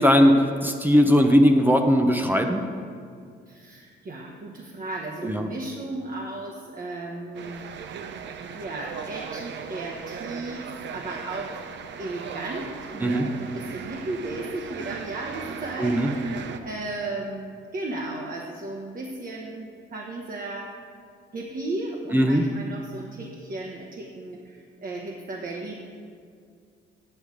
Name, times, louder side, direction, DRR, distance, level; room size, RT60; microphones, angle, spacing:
voice 1, 0.0-2.6 5.2-5.5 13.0-13.3 15.8-16.1 22.1-22.4, equal, 10° right, 4 dB, 0.7 m, -19 dB
voice 2, 3.5-7.6 8.5-11.5 12.0-20.7 21.3-25.7, right 2 dB, 45° right, 0 dB, 1.1 m, -35 dB
sound 1, 7.3-16.6, right 6 dB, 65° right, 0.7 m, -37 dB
8.7 x 8.0 x 5.0 m, 2.2 s
cardioid pair, 90°, 20 cm